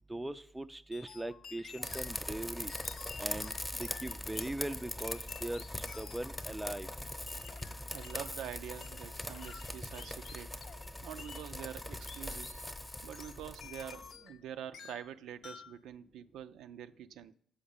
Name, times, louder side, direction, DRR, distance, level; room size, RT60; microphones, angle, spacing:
voice 1, 0.1-2.7 3.2-3.5 3.8-6.9, right 1 dB, 10° right, 0.4 m, -40 dB
sound 1, 0.9-2.2 2.7-4.6 5.0-6.4 7.3-8.3 8.8-10.9 11.2-11.5 12.1-12.7 13.1-14.4 14.7-15.1 15.4-15.8, left 7 dB, 70° left, 0.6 m, -52 dB
sound 2, 1.8-14.1, left 1 dB, 10° left, 0.8 m, -42 dB
voice 2, 7.9-10.5 11.0-12.5 13.0-17.3, right 10 dB, 80° right, 0.4 m, -46 dB
7.1 x 5.0 x 7.0 m
cardioid pair, 90°, 0 cm